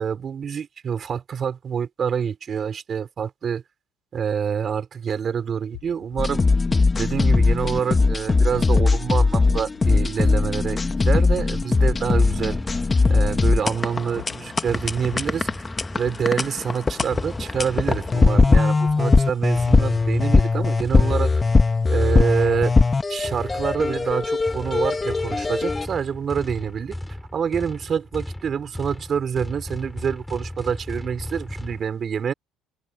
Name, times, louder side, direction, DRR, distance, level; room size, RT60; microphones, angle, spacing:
voice 1, 0.0-3.6 4.1-6.5 6.9-12.6 13.1-15.5 15.9-21.3 21.9-22.8 23.1-27.0 27.3-32.3, right 7 dB, 45° right, 5.5 m, -26 dB
sound 1, 5.7-9.1 9.5-11.9 12.3-16.6 17.0-19.4 19.8-20.5, left 25 dB, 85° left, 6.5 m, -43 dB
sound 2, 6.2-25.9, left 3 dB, 25° left, 1.7 m, -20 dB
sound 3, 12.2-14.0 14.7-16.4 17.1-18.7 19.5-31.8, left 1 dB, 5° left, 5.3 m, -36 dB
hypercardioid pair, 75°, 0 cm